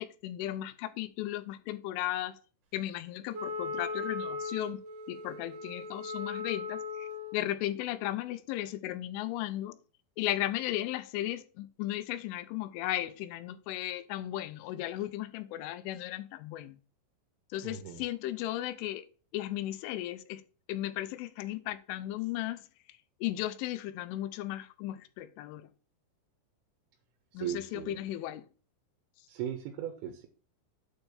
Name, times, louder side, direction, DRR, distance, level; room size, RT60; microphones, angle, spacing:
voice 1, 0.0-2.3 2.7-4.8 5.1-9.8 10.2-16.8 17.5-19.1 19.3-20.4 20.7-22.6 23.2-25.7 27.3-28.4, left 14 dB, 85° left, 3.2 m, -35 dB
Wind instrument woodwind instrument, 3.3-7.5, left 3 dB, 60° right, 2.4 m, -38 dB
voice 2, 17.6-18.1 27.3-28.0 29.3-30.3, right 10 dB, 80° right, 3.4 m, -38 dB
8.9 x 4.4 x 7.0 m
omnidirectional pair, 5.5 m